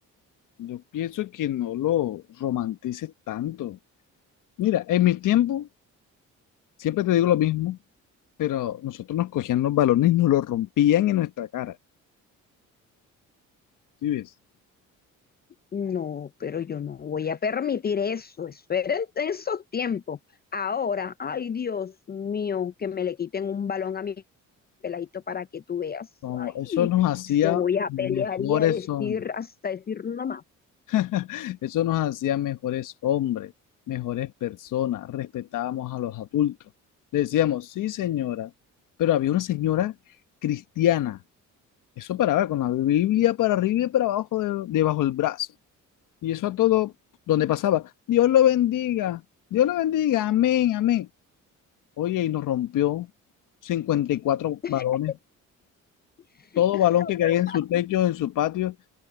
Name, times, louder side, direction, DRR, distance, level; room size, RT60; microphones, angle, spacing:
voice 1, 0.6-3.8 4.6-5.7 6.8-7.8 8.4-11.8 14.0-14.3 26.2-27.6 27.9-29.2 30.9-33.5 33.9-36.6 37.1-38.5 39.0-39.9 40.4-41.2 42.0-45.5 46.2-46.9 47.3-49.2 49.5-51.1 52.0-53.1 53.6-55.1 56.6-58.7, left 12 dB, 80° left, 1.3 m, -24 dB
voice 2, 15.7-20.2 20.5-24.2 24.8-26.9 27.4-30.4 54.6-54.8 56.4-56.6 57.0-57.6, left 7 dB, 30° left, 0.5 m, -30 dB
cardioid pair, 115°, 31 cm